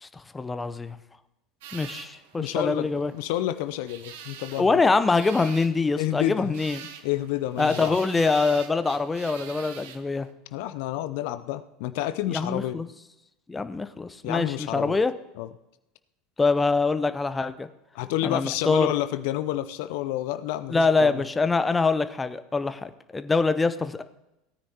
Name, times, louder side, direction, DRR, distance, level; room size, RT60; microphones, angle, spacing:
voice 1, 0.0-1.0 1.7-3.1 4.6-6.9 7.6-10.3 12.3-12.9 13.5-15.1 16.4-17.7 18.2-18.9 20.7-24.0, left 4 dB, 15° left, 12 dB, 0.7 m, -24 dB
sound 1, 1.6-10.3, right 8 dB, 65° right, 1.1 m, -45 dB
voice 2, 2.4-4.8 6.0-6.6 7.0-8.0 10.5-12.8 14.2-15.0 15.4-15.5 17.9-21.3, left 14 dB, 65° left, 12 dB, 0.5 m, -29 dB
17.5 x 9.6 x 2.9 m, 0.92 s
hypercardioid pair, 75°, 0 cm